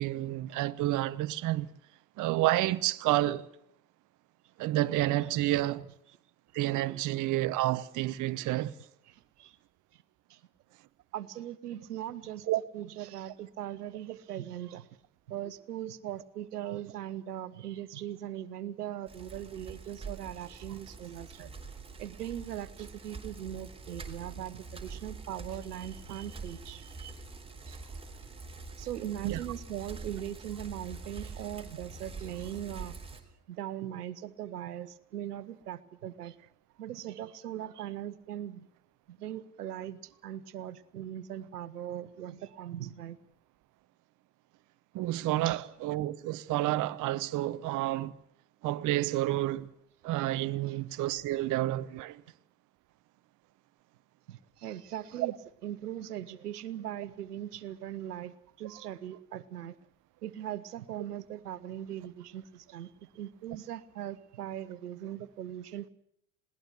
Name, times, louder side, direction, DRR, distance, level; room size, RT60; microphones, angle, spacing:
voice 1, 0.0-1.7 2.2-3.5 4.6-5.9 6.5-8.7 12.5-12.6 29.2-29.4 44.9-48.1 48.6-49.7 50.0-52.2 55.2-55.3, right 16 dB, 40° right, 0.8 m, -29 dB
voice 2, 9.1-9.6 9.9-10.0 10.3-10.4 11.1-12.5 12.7-14.9 15.3-21.5 22.0-27.2 27.7-27.9 28.8-33.0 33.5-36.4 36.8-38.7 39.1-43.2 45.4-45.7 50.7-50.8 54.3-55.3 55.6-59.8 60.2-65.9, right 11 dB, 80° right, 1.1 m, -40 dB
Bicycle, 19.1-33.2, right 4 dB, 10° right, 3.3 m, -45 dB
20.5 x 18.0 x 8.0 m
hypercardioid pair, 75°, 46 cm